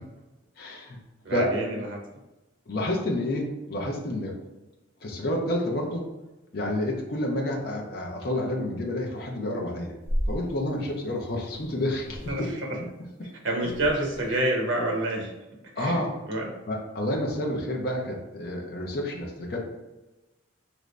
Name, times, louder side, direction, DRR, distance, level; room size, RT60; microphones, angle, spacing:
voice 1, 0.6-1.0 1.3-1.5 2.7-4.3 5.0-6.0 6.5-9.9 10.3-12.5 13.2-13.3 13.6-13.7 15.8-16.1 16.7-19.6, left 1 dB, 50° left, -1 dB, 0.6 m, -29 dB
voice 2, 1.2-2.0 12.3-12.5 13.4-15.3 15.8-16.0 16.3-16.5, right 1 dB, 90° right, 0 dB, 0.9 m, -27 dB
sound 1, 10.0-10.4 11.5-11.7 12.0-12.5 13.6-14.3, equal, 45° right, 0.9 m, -32 dB
3.0 x 2.5 x 3.2 m, 1.0 s
head